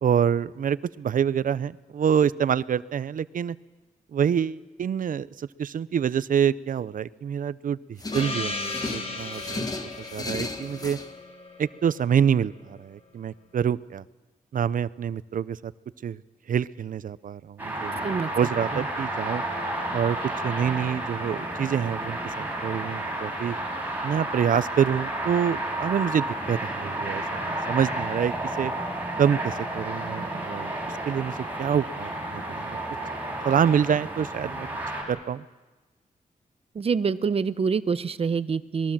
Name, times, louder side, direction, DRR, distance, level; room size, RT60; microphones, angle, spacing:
voice 1, 0.0-3.6 4.1-9.7 10.1-11.0 11.6-14.0 14.5-15.7 16.0-16.2 16.5-19.4 19.9-20.2 20.4-22.3 22.6-23.6 24.0-28.7 29.2-30.7 31.1-32.8 33.4-34.7 35.1-35.4, right 8 dB, 75° right, 17 dB, 0.7 m, -26 dB
sound 1, 8.0-11.1, left 2 dB, 25° left, 1.7 m, -35 dB
Gong, 8.1-12.5, left 3 dB, 45° left, 3.6 m, -36 dB
sound 2, 17.6-35.0, right 1 dB, 15° right, 6.9 m, -31 dB
voice 2, 36.7-38.9, right 5 dB, 45° right, 14 dB, 0.8 m, -26 dB
26.5 x 21.0 x 7.5 m, 1.2 s
wide cardioid pair, 170°, 14 cm